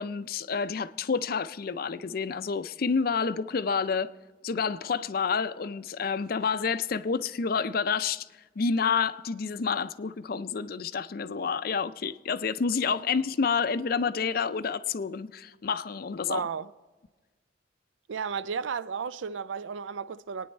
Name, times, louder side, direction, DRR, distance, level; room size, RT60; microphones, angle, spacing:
voice 1, 0.0-4.1 4.4-8.3 8.6-16.4, left 5 dB, 50° left, 0.4 m, -29 dB
voice 2, 16.3-16.7 18.1-20.5, right 6 dB, 85° right, 0.5 m, -33 dB
25.0 x 9.5 x 4.4 m
head